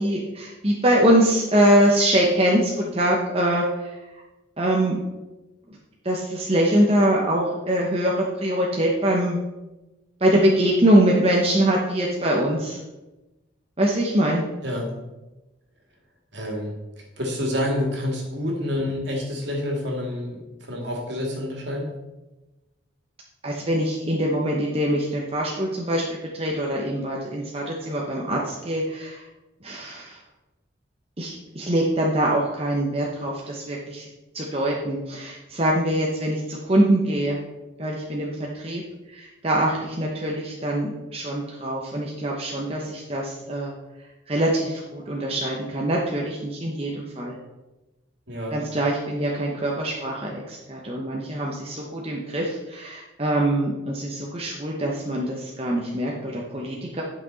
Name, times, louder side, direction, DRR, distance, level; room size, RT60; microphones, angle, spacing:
voice 1, 0.0-3.9 4.6-5.0 6.0-9.4 10.2-12.8 13.8-14.4 23.4-26.0 26.3-29.2 29.6-30.2 31.2-34.1 34.3-37.4 37.8-38.3 38.5-38.8 39.1-43.7 44.3-47.4 48.5-57.0, right 1 dB, 30° right, -2 dB, 0.9 m, -23 dB
voice 2, 16.3-16.7 17.2-21.9 48.3-48.6, left 1 dB, 60° right, 0 dB, 2.2 m, -28 dB
10.5 x 6.0 x 4.0 m, 1.1 s
head